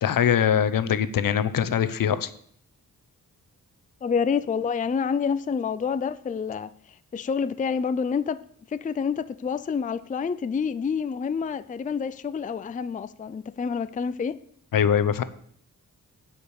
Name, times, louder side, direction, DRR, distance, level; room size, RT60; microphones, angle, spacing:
voice 1, 0.0-2.3 14.7-15.2, left 8 dB, 75° left, 0.8 m, -22 dB
voice 2, 4.0-6.7 7.1-8.4 8.7-14.4, left 6 dB, 25° left, 0.4 m, -28 dB
9.7 x 5.2 x 8.2 m
wide cardioid pair, 110°, 34 cm